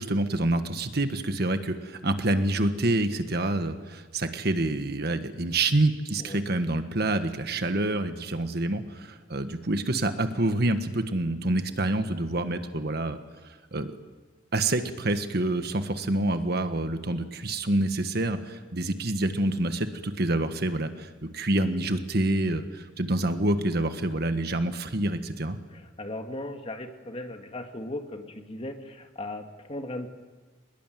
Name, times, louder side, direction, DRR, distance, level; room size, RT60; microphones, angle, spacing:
voice 1, 0.0-13.2 13.7-13.9 14.5-25.6, right 2 dB, 55° right, 8 dB, 1.5 m, -27 dB
voice 2, 25.7-30.1, left 1 dB, 30° left, 5 dB, 1.9 m, -37 dB
23.5 x 21.0 x 9.3 m, 1.3 s
head